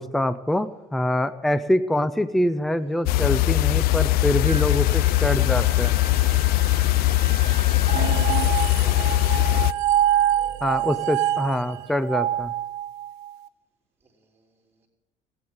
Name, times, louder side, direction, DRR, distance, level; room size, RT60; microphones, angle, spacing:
voice 1, 0.0-5.9 10.6-12.5, left 1 dB, ahead, 14 dB, 0.4 m, -24 dB
sound 1, 3.1-9.7, left 17 dB, 70° left, 0.4 m, -20 dB
Wind instrument woodwind instrument, 4.4-8.1, right 4 dB, 35° right, 1.8 m, -41 dB
voice 2, 7.5-9.4 14.0-14.9, right 3 dB, 15° right, -2 dB, 3.2 m, -48 dB
sound 2, 7.9-13.3, right 12 dB, 80° right, 0.9 m, -25 dB
16.0 x 8.8 x 7.8 m, 1.0 s
cardioid pair, 150°, 16 cm